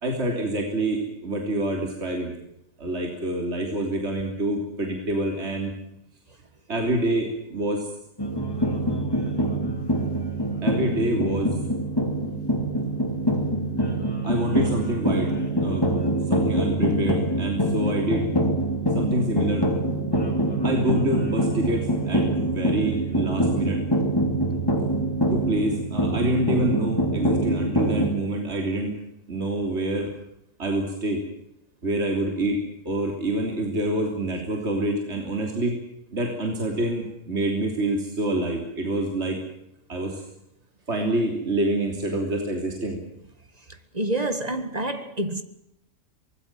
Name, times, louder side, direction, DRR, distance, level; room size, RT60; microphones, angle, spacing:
voice 1, 0.0-2.3 2.8-5.7 6.7-7.9 10.6-11.6 14.2-15.3 15.6-15.9 16.3-18.3 19.0-19.7 20.6-23.8 25.3-29.0 29.3-30.1 30.6-31.2 31.8-32.6 32.9-35.8 36.1-39.4 39.9-40.2 40.9-43.0, right 1 dB, 40° right, 3.6 m, -26 dB
sound 1, 8.2-28.1, right 1 dB, 15° left, 3.0 m, -24 dB
voice 2, 43.9-45.4, right 1 dB, 25° right, 1.8 m, -27 dB
24.5 x 20.0 x 7.5 m
omnidirectional pair, 1.7 m